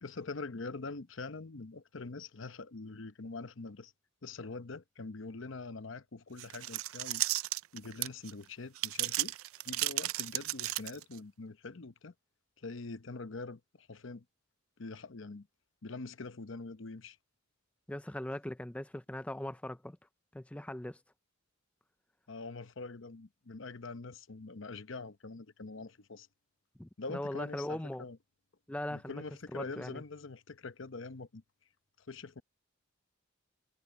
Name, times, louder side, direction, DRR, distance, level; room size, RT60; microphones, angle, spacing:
voice 1, 0.0-3.9 4.2-7.2 7.7-9.3 9.6-12.1 12.6-14.2 14.8-15.5 15.8-17.2 22.3-26.3 27.0-28.2 28.9-31.4 32.0-32.4, left 3 dB, 65° left, 0.9 m, -44 dB
sound 1, 6.4-8.3 8.7-11.2, right 17 dB, 90° right, 0.4 m, -34 dB
voice 2, 17.9-20.0 20.3-21.0 26.8-28.1 28.7-29.2 29.5-30.0, left 1 dB, 5° left, 0.4 m, -39 dB
head